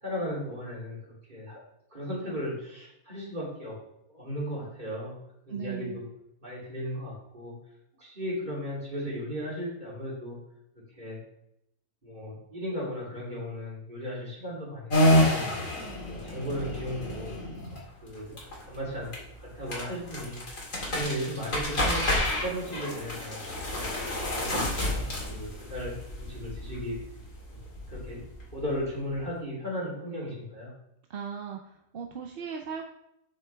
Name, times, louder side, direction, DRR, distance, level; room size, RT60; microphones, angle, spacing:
voice 1, 0.0-1.6 1.9-3.8 4.1-5.1 5.5-6.0 6.4-7.5 8.0-10.4 11.0-11.2 12.0-15.4 16.1-17.3 18.0-18.4 18.7-19.1 19.4-20.4 20.9-23.5 23.7-23.9 24.3-25.0 25.3-27.0 27.5-27.6 27.9-28.2 28.5-30.7, equal, 35° right, -5 dB, 3.2 m, -36 dB
voice 2, 5.5-6.0 31.1-32.8, right 7 dB, 55° right, 3 dB, 0.8 m, -37 dB
sound 1, 14.9-29.1, left 1 dB, 80° left, 2.8 m, -30 dB
8.1 x 6.4 x 3.4 m, 0.79 s
omnidirectional pair, 1.4 m